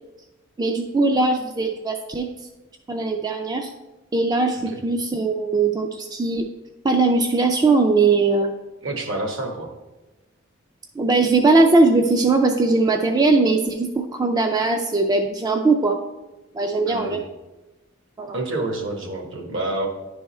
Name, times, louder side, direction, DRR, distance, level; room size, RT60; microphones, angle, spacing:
voice 1, 0.6-2.3 2.9-3.7 4.1-6.4 6.8-8.5 11.0-16.0 16.5-17.2 18.2-18.4, right 3 dB, 20° right, 4 dB, 0.3 m, -20 dB
voice 2, 8.8-9.7 16.9-17.2 18.3-19.9, right 2 dB, 65° right, 2 dB, 1.2 m, -28 dB
10.0 x 3.5 x 4.2 m, 1.1 s
head